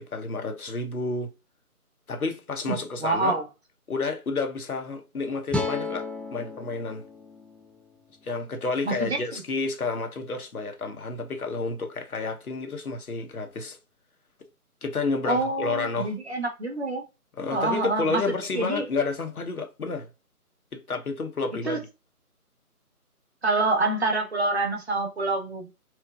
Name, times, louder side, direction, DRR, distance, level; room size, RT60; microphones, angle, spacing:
voice 1, 0.0-1.3 2.1-3.4 3.9-7.0 8.2-13.8 14.8-16.2 17.4-20.1 20.7-21.8, left 3 dB, 70° left, 1.0 m, -30 dB
voice 2, 2.7-3.5 8.8-9.2 15.3-17.0 17.5-18.2 18.5-18.8 21.7-21.8 23.4-25.7, right 2 dB, 45° right, 0.8 m, -26 dB
sound 1, 5.5-8.7, left 3 dB, 5° left, 0.3 m, -34 dB
4.4 x 2.1 x 2.3 m
figure-of-eight pair, 160°, 46 cm